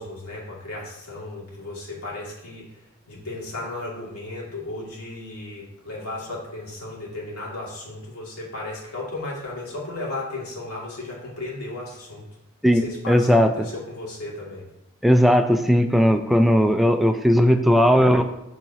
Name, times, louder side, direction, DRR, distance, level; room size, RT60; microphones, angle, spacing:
voice 1, 0.0-12.2 12.7-14.7, left 2 dB, 90° left, -4 dB, 2.5 m, -35 dB
voice 2, 13.1-13.5 15.0-18.2, equal, ahead, 5 dB, 0.4 m, -17 dB
12.0 x 4.1 x 2.9 m, 0.89 s
head